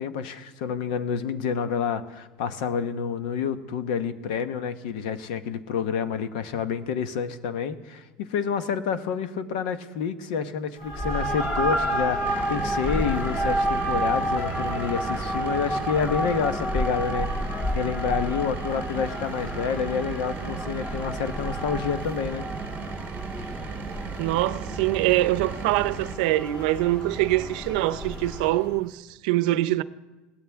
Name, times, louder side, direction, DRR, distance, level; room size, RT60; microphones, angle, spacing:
voice 1, 0.0-22.5, left 7 dB, 85° left, 1.1 m, -29 dB
sound 1, 10.8-28.7, equal, 25° left, 2.5 m, -30 dB
sound 2, 12.2-26.2, right 8 dB, 35° right, 0.8 m, -37 dB
voice 2, 24.2-29.8, right 16 dB, 80° right, 0.6 m, -24 dB
21.0 x 17.0 x 3.5 m
cardioid pair, 155°, 4 cm